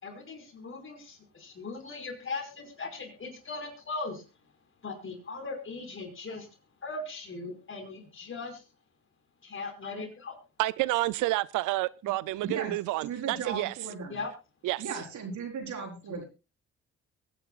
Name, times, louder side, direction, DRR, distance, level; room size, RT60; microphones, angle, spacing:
voice 1, 0.0-4.2 4.8-6.5 6.8-8.6 9.4-10.4 14.1-14.3 16.1-16.2, left 3 dB, 45° left, 5.3 m, -39 dB
voice 2, 10.6-13.7 14.6-14.8, right 18 dB, 90° right, 0.5 m, -29 dB
voice 3, 12.4-14.2 14.8-16.2, right 5 dB, 70° right, 4.4 m, -37 dB
23.0 x 9.9 x 2.4 m
cardioid pair, 90°, 30 cm